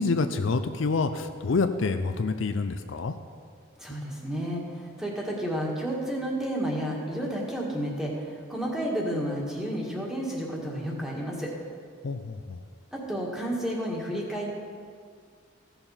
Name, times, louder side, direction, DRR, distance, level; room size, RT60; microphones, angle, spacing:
voice 1, 0.0-3.1 12.0-12.6, left 4 dB, 65° left, 8 dB, 0.5 m, -27 dB
voice 2, 3.8-11.5 12.9-14.5, equal, 5° right, -3 dB, 1.7 m, -31 dB
15.0 x 6.9 x 5.6 m, 2.1 s
head